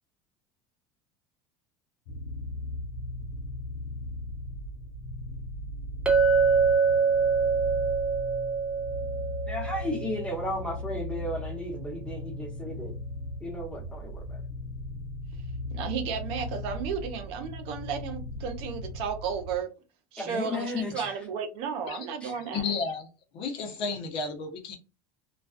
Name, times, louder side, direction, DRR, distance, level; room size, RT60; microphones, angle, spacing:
sound 1, 2.1-19.6, left 2 dB, 90° left, 0.5 m, -37 dB
Chink clink, 6.1-10.5, right 5 dB, 10° right, 0.5 m, -25 dB
voice 1, 9.5-12.9 13.4-14.4 20.2-21.2 22.2-22.3, left 1 dB, 10° left, 1.1 m, -34 dB
voice 2, 15.7-19.7 20.1-22.7, right 6 dB, 60° right, 0.6 m, -33 dB
voice 3, 22.3-23.1 23.3-24.8, left 4 dB, 55° left, 0.8 m, -32 dB
2.4 x 2.3 x 2.4 m
supercardioid pair, 125°, 11 cm